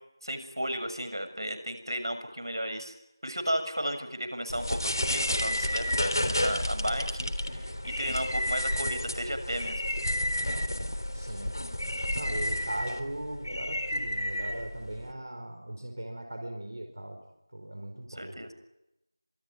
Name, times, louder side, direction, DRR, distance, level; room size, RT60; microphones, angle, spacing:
voice 1, 0.2-2.9 3.2-9.8 18.1-18.5, equal, 85° right, 8 dB, 6.7 m, -34 dB
sound 1, 4.5-15.1, left 1 dB, 65° left, 3.6 m, -31 dB
voice 2, 11.1-11.5 12.2-17.2 17.5-18.4, right 1 dB, 50° right, 5 dB, 4.6 m, -38 dB
27.0 x 22.5 x 9.7 m, 0.91 s
figure-of-eight pair, 175°, 2 cm